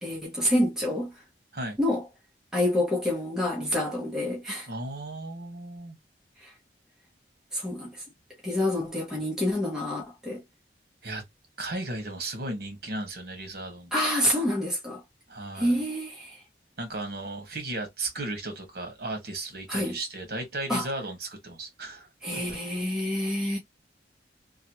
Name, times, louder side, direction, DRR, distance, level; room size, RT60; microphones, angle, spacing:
voice 1, 0.0-1.2 1.8-2.1 2.5-4.7 6.4-6.5 7.5-8.0 8.4-10.4 13.9-15.0 15.5-16.4 19.7-20.0 20.7-20.9 22.2-23.6, left 1 dB, 5° right, 1.0 m, -27 dB
voice 2, 4.7-6.0 11.0-11.2 11.6-13.9 15.3-15.8 16.8-22.4, right 2 dB, 60° right, 1.4 m, -35 dB
3.1 x 2.4 x 2.8 m
head